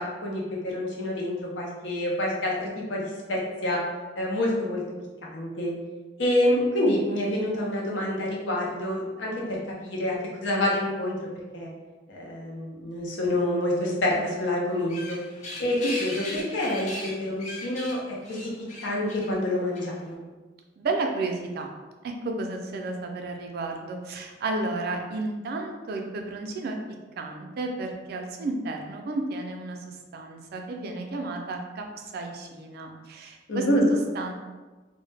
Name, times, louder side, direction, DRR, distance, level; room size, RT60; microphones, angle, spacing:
voice 1, 0.0-3.8 4.2-4.8 5.2-5.7 6.2-10.2 10.4-11.2 11.5-11.7 12.1-15.2 15.6-18.5 18.8-20.2 33.5-33.9, left 1 dB, 85° left, -2 dB, 0.6 m, -27 dB
sound 1, 14.7-20.1, left 2 dB, 40° left, 0.4 m, -39 dB
voice 2, 20.8-21.7 22.0-26.8 27.2-31.9 32.1-34.3, right 2 dB, 60° right, 3 dB, 0.3 m, -32 dB
2.1 x 2.0 x 3.2 m, 1.3 s
head